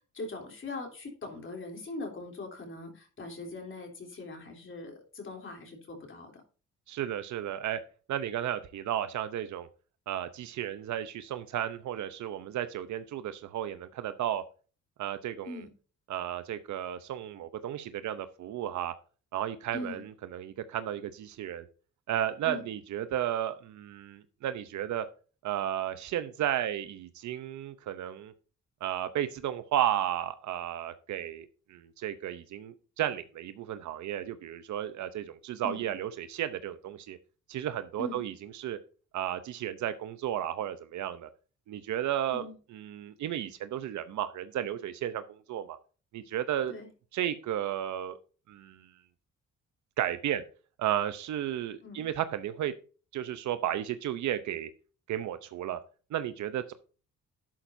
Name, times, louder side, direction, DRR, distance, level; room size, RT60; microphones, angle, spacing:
voice 1, 0.1-6.3 15.4-15.7 19.7-20.0 22.4-22.6 35.6-35.9 38.0-38.2 42.3-42.6 46.7-46.9 51.8-52.1, left 2 dB, 40° left, 2 dB, 3.3 m, -41 dB
voice 2, 6.9-7.8 8.1-9.7 10.1-14.4 15.0-15.7 16.1-18.9 19.3-21.7 22.1-25.1 25.4-28.3 28.8-37.2 37.5-38.8 39.1-41.3 41.7-42.4 42.7-45.8 46.1-46.7 47.1-48.2 48.5-48.9 50.0-50.4 50.8-52.7 53.1-54.7 55.1-55.8 56.1-56.7, right 11 dB, 70° right, 12 dB, 0.7 m, -33 dB
11.5 x 8.9 x 2.7 m, 0.37 s
cardioid pair, 90°, 30 cm